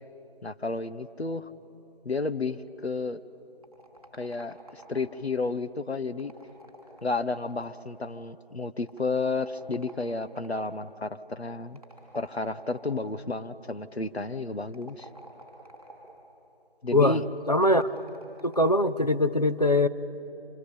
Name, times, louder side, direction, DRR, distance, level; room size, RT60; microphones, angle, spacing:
voice 1, 0.4-1.5 2.0-3.2 4.1-6.3 7.0-11.8 12.1-15.1 16.8-17.3, left 3 dB, 85° left, 11 dB, 1.1 m, -32 dB
sound 1, 3.6-5.2 6.1-7.9 8.9-10.7 11.7-13.1 14.6-16.2 17.5-18.8, right 1 dB, ahead, 2.3 m, -51 dB
voice 2, 17.5-17.9 18.4-19.9, left 1 dB, 40° left, 10 dB, 0.7 m, -22 dB
26.5 x 22.5 x 8.7 m, 2.9 s
figure-of-eight pair, 175°, 31 cm